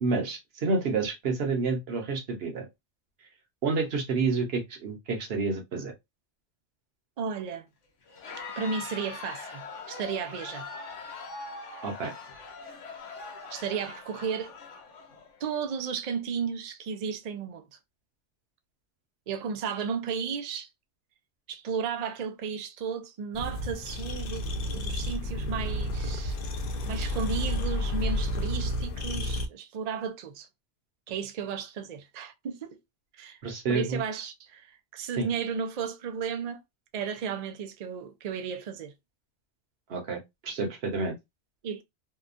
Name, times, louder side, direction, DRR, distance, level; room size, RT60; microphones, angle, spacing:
voice 1, 0.0-2.7 3.6-5.9 11.8-12.1 33.4-34.0 35.2-35.3 39.9-41.1, right 4 dB, 60° right, 1.0 m, -29 dB
voice 2, 7.2-7.7 8.6-10.7 13.5-14.5 15.4-17.7 19.3-20.7 21.5-24.4 24.7-26.4 26.9-30.5 31.1-32.8 33.1-33.4 33.7-36.6 36.9-38.9 41.6-41.8, right 6 dB, 75° right, 0.3 m, -34 dB
Crowd, 8.1-15.6, left 4 dB, 85° left, 1.2 m, -42 dB
sound 1, 23.3-29.5, left 1 dB, 60° left, 0.6 m, -31 dB
2.8 x 2.2 x 2.4 m
omnidirectional pair, 1.2 m